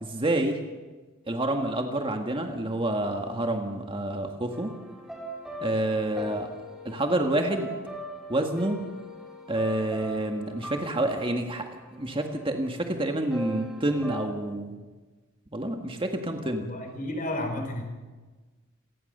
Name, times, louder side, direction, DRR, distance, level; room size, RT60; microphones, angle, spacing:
voice 1, 0.0-0.6 1.3-4.7 5.6-6.5 6.9-7.7 8.3-8.8 9.5-14.8 15.5-16.7, right 1 dB, 25° right, 4 dB, 1.8 m, -28 dB
sound 1, 4.5-12.5 13.3-14.2, right 1 dB, ahead, 3.3 m, -41 dB
voice 2, 16.6-17.8, left 1 dB, 40° left, 5 dB, 4.6 m, -32 dB
27.5 x 18.5 x 6.7 m, 1.3 s
head